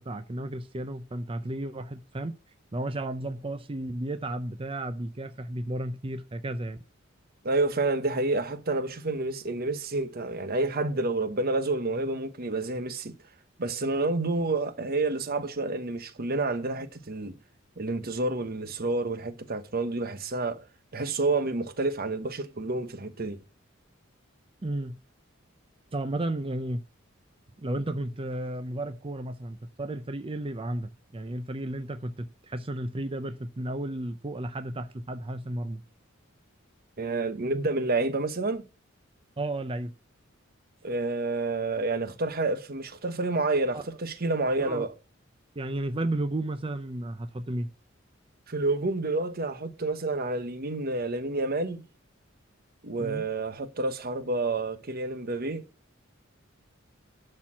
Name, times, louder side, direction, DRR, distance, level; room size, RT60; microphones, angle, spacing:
voice 1, 0.0-2.3 2.7-6.8 24.6-25.0 25.9-26.8 27.6-35.8 39.4-39.9 43.7-43.9 44.6-44.9 45.6-47.7 53.0-53.2, right 1 dB, 25° right, 0.6 m, -33 dB
voice 2, 7.4-13.2 13.6-17.4 17.8-20.6 20.9-23.4 37.0-38.6 40.8-44.9 48.5-51.8 52.8-55.6, right 2 dB, 50° right, 1.1 m, -29 dB
12.0 x 4.4 x 7.4 m
head